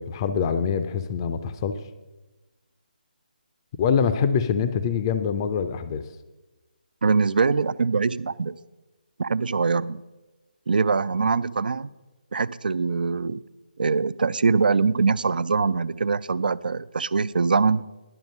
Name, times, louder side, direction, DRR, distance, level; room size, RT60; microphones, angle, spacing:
voice 1, 0.0-1.8 3.8-6.0, left 6 dB, 30° left, 11 dB, 0.5 m, -24 dB
voice 2, 7.0-8.6 9.2-10.0 10.7-11.9 12.3-13.4 13.8-17.8, right 4 dB, 70° right, 17 dB, 0.3 m, -23 dB
11.0 x 7.2 x 5.3 m, 1.1 s
figure-of-eight pair, 150°, 5 cm